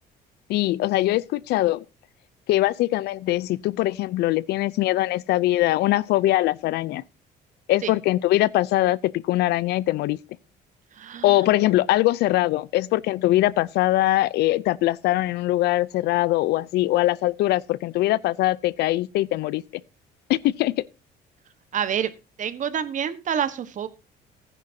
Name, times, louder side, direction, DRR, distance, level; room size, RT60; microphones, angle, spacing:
voice 1, 0.5-1.8 2.5-7.0 7.7-10.2 11.2-19.6 20.3-20.8, left 16 dB, 75° left, 0.5 m, -22 dB
voice 2, 11.0-11.4 21.7-22.1 22.4-23.9, right 8 dB, 50° right, 1.3 m, -27 dB
15.0 x 10.0 x 2.7 m
cardioid pair, 110°, 17 cm